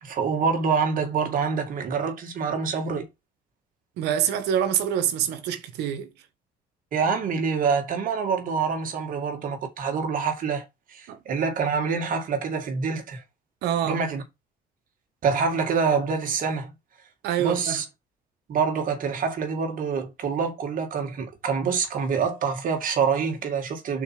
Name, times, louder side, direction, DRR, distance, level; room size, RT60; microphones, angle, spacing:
voice 1, 0.0-3.0 6.9-13.2 13.8-14.2 15.2-16.7 17.4-17.8 18.5-24.0, right 5 dB, 55° right, 2.2 m, -26 dB
voice 2, 4.0-6.1 11.1-11.2 13.6-14.0 17.2-17.8, right 9 dB, 85° right, 1.4 m, -25 dB
5.6 x 4.4 x 5.9 m
cardioid pair, 110°, 17 cm